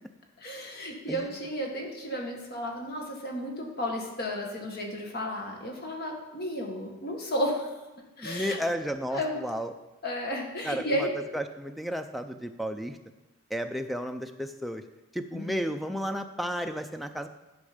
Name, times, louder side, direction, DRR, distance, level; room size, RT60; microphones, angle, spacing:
voice 1, 0.4-7.7 8.2-8.6 9.1-9.4 10.0-11.1 15.3-15.6, equal, 50° left, 1 dB, 1.7 m, -33 dB
voice 2, 8.2-9.7 10.6-13.0 13.5-14.8 15.1-17.3, equal, ahead, 6 dB, 0.4 m, -33 dB
11.5 x 5.3 x 5.1 m, 1.1 s
head